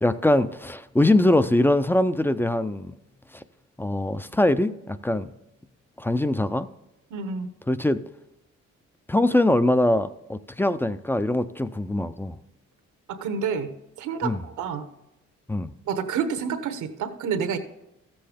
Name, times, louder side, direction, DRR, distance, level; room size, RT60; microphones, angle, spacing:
voice 1, 0.0-2.9 3.3-3.4 3.8-5.3 6.0-6.7 7.7-8.0 9.1-12.4 14.2-14.4 15.5-15.7, left 1 dB, 5° left, 13 dB, 0.4 m, -22 dB
voice 2, 7.1-7.5 13.1-13.7 14.0-14.8 15.9-17.6, right 6 dB, 80° right, 9 dB, 1.2 m, -28 dB
13.5 x 7.8 x 3.4 m, 0.90 s
cardioid pair, 90°, 30 cm